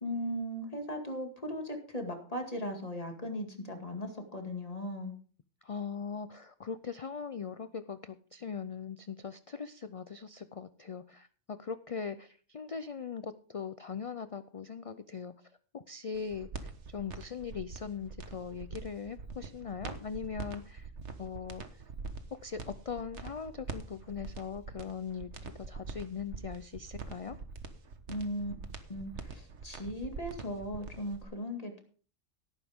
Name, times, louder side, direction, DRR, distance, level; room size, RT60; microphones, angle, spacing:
voice 1, 0.0-5.1 28.1-28.5 28.9-31.8, equal, 30° left, 4 dB, 2.3 m, -37 dB
voice 2, 5.6-20.9 21.2-21.6 22.4-27.4, left 6 dB, 50° left, 12 dB, 0.4 m, -40 dB
sound 1, 16.1-31.3, right 4 dB, 65° right, 1.6 m, -44 dB
17.0 x 9.4 x 3.6 m, 0.43 s
omnidirectional pair, 1.3 m